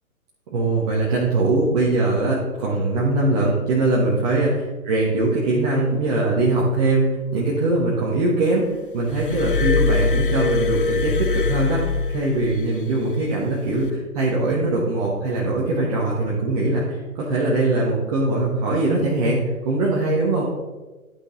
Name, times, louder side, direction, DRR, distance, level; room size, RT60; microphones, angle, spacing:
voice 1, 0.5-8.7 8.9-20.4, right 2 dB, 25° right, -5 dB, 1.4 m, -21 dB
Glass, 9.1-12.7 13.7-13.9, left 4 dB, 40° left, 0.5 m, -23 dB
11.5 x 5.6 x 4.0 m, 1.2 s
figure-of-eight pair, 135°, 44 cm